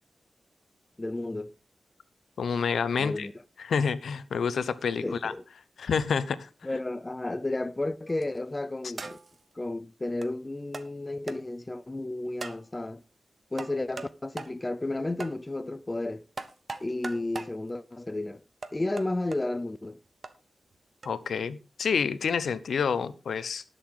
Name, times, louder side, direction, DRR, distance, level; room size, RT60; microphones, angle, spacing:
voice 1, 1.0-1.5 3.0-3.3 5.0-5.4 6.6-9.2 9.6-13.0 13.5-16.2 16.8-18.4 18.7-20.0, left 2 dB, 15° left, 0.5 m, -32 dB
voice 2, 2.4-3.3 3.6-5.3 5.8-6.5 21.0-23.6, left 6 dB, 90° left, 0.8 m, -28 dB
sound 1, 8.1-8.4 9.0-9.4 10.2-10.3 10.7-10.9 11.3-11.4 12.4-12.6 13.6-14.1 14.4-14.5 15.2-15.4 16.4-17.5 18.6-19.4 20.2-20.3 21.0-21.2, right 3 dB, 35° right, 1.0 m, -39 dB
19.0 x 6.8 x 3.8 m
wide cardioid pair, 170°, 0 cm